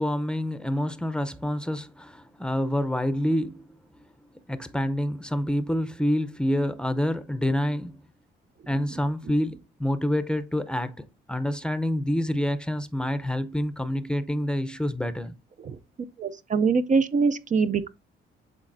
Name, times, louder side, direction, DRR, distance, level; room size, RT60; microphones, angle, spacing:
voice 1, 0.0-3.8 4.5-8.0 8.7-15.3, equal, 5° left, 0.7 m, -27 dB
voice 2, 16.2-17.9, right 5 dB, 40° right, 0.5 m, -23 dB
11.5 x 4.0 x 2.6 m
cardioid pair, 90°, 20 cm